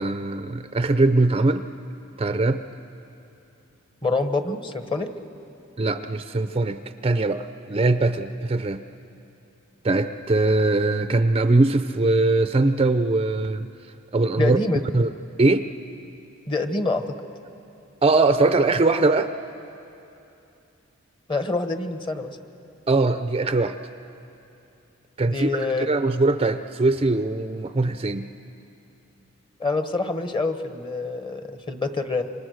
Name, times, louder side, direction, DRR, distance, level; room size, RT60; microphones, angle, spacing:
voice 1, 0.0-1.7 2.2-2.6 5.8-8.8 9.8-13.7 14.1-14.6 14.9-15.1 15.4-15.7 18.0-19.3 22.9-23.8 25.2-28.3, right 2 dB, 30° right, 10 dB, 0.5 m, -21 dB
voice 2, 4.0-5.1 14.4-14.8 16.5-17.0 21.3-22.4 25.2-25.9 29.6-32.2, left 3 dB, 25° left, 8 dB, 1.2 m, -26 dB
28.5 x 25.0 x 6.4 m, 2.8 s
head